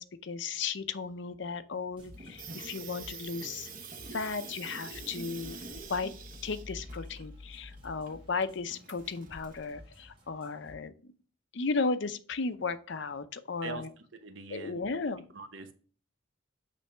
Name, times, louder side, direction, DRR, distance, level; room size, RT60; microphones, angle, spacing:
voice 1, 0.0-3.7 4.1-5.6 5.9-6.1 6.4-10.9 11.5-13.9 14.5-15.2, left 4 dB, 65° left, 12 dB, 0.6 m, -35 dB
sound 1, 1.9-3.4 3.7-10.7, left 1 dB, 25° right, 2.0 m, -51 dB
Water tap faucet / Sink (filling or washing), 2.1-9.7, right 4 dB, 45° right, 0.9 m, -46 dB
voice 2, 14.2-14.8 15.3-15.7, right 4 dB, 70° right, 7 dB, 1.0 m, -42 dB
8.3 x 3.4 x 3.4 m, 0.41 s
head